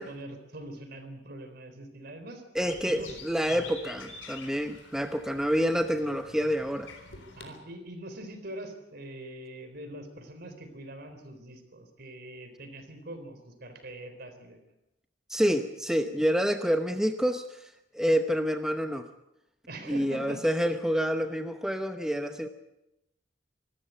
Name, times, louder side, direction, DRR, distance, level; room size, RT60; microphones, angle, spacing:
voice 1, 0.0-2.4 2.9-3.2 3.5-3.7 7.4-14.6 19.7-20.4, right 1 dB, 60° right, 8 dB, 3.9 m, -43 dB
voice 2, 2.5-6.9 15.3-19.1 19.9-22.5, equal, 5° right, 6 dB, 0.9 m, -28 dB
sound 1, 2.6-7.6, left 4 dB, 90° left, 3.8 m, -46 dB
25.5 x 14.0 x 8.2 m, 0.91 s
head